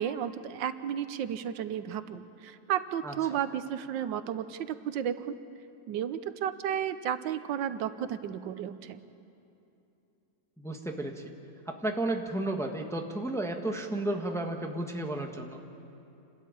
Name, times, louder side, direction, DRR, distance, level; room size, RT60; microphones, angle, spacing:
voice 1, 0.0-5.4 5.9-9.0, right 9 dB, 90° right, 12 dB, 1.5 m, -33 dB
voice 2, 10.6-11.2 11.7-15.6, right 1 dB, ahead, 2 dB, 1.1 m, -33 dB
28.5 x 13.0 x 8.9 m, 2.8 s
omnidirectional pair, 1.9 m